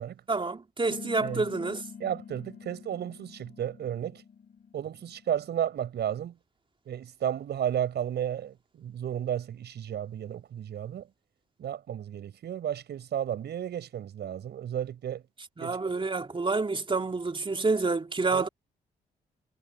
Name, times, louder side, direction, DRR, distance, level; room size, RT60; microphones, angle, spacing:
voice 1, 0.3-1.8 15.6-18.5, right 3 dB, 30° right, 3.5 m, -28 dB
sound 1, 0.9-5.8, left 6 dB, 55° left, 5.9 m, -46 dB
voice 2, 2.0-4.2 4.7-6.4 6.9-11.1 11.6-15.2 15.6-16.1 18.3-18.5, right 10 dB, 70° right, 5.8 m, -33 dB
supercardioid pair, 60°, 18 cm